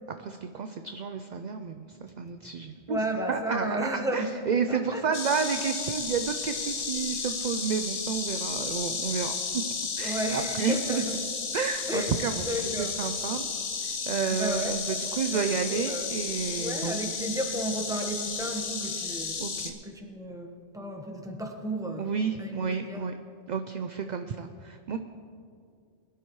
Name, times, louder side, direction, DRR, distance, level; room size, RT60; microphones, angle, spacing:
voice 1, 0.2-3.0 3.3-9.6 10.0-11.0 11.5-12.5 12.8-13.5 13.8-17.1 19.4-19.8 22.0-23.2 23.5-25.0, right 6 dB, 55° right, 7 dB, 0.5 m, -31 dB
voice 2, 2.9-4.3 4.7-5.0 10.0-11.1 11.9-12.1 12.5-13.0 14.4-14.8 15.3-15.4 15.7-16.2 16.6-19.4 19.9-22.1 22.4-23.0, right 1 dB, 5° right, 2 dB, 1.1 m, -33 dB
Insect, 5.1-19.7, left 5 dB, 90° left, 1.5 m, -33 dB
22.0 x 11.5 x 3.1 m, 2.3 s
omnidirectional pair, 1.2 m